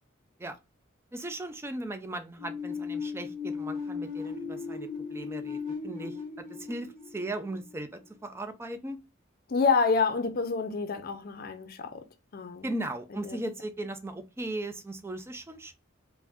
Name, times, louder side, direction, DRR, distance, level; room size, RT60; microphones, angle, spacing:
voice 1, 1.1-9.0 12.6-15.7, right 1 dB, 15° right, 0.4 m, -38 dB
sound 1, 2.4-8.1, left 5 dB, 45° right, 1.0 m, -37 dB
voice 2, 9.5-12.0 12.3-12.7 13.1-13.4, left 4 dB, 50° left, 0.5 m, -28 dB
2.5 x 2.2 x 3.3 m
head